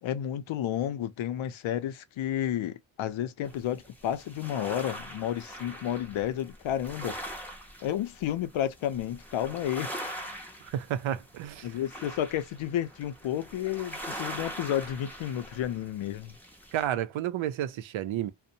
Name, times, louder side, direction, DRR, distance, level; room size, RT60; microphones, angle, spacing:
voice 1, 0.0-7.2 7.8-9.9 11.6-16.4, left 11 dB, 85° left, 0.5 m, -31 dB
sound 1, 3.4-16.9, equal, 5° left, 0.5 m, -42 dB
voice 2, 10.6-11.7 16.7-18.3, right 11 dB, 80° right, 0.5 m, -31 dB
2.6 x 2.1 x 2.6 m
wide cardioid pair, 180°, 46 cm